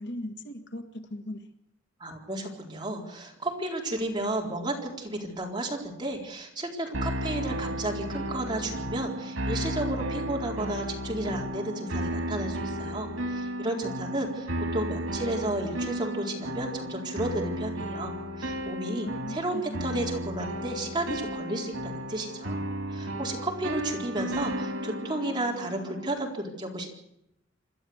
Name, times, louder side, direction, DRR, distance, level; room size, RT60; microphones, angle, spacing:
voice 1, 0.0-1.4 19.0-20.0, left 1 dB, 60° left, 8 dB, 1.8 m, -38 dB
voice 2, 2.0-22.6 22.9-26.9, right 1 dB, 25° right, 0 dB, 4.2 m, -33 dB
sound 1, 6.9-26.2, equal, 90° right, 2.4 m, -34 dB
27.0 x 12.5 x 8.0 m, 0.79 s
head